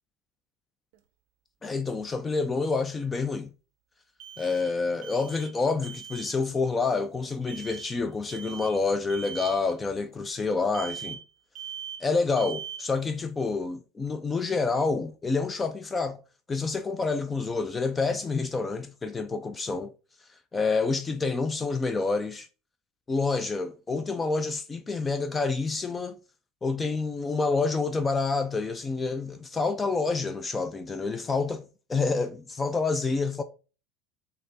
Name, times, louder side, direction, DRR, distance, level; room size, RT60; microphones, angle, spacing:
sound 1, 0.9-1.0 4.2-5.6 5.8-6.3 7.5-8.0 8.3-8.8 9.1-9.6 10.7-11.3 11.5-12.1 12.4-12.9, right 8 dB, 65° right, 0.5 m, -41 dB
voice 1, 1.6-3.5 4.4-11.2 12.0-16.2 16.5-19.9 20.5-22.5 23.1-26.2 26.6-31.6 31.9-33.4, left 4 dB, 15° left, 0.3 m, -28 dB
3.4 x 3.3 x 3.9 m
supercardioid pair, 145°, 0 cm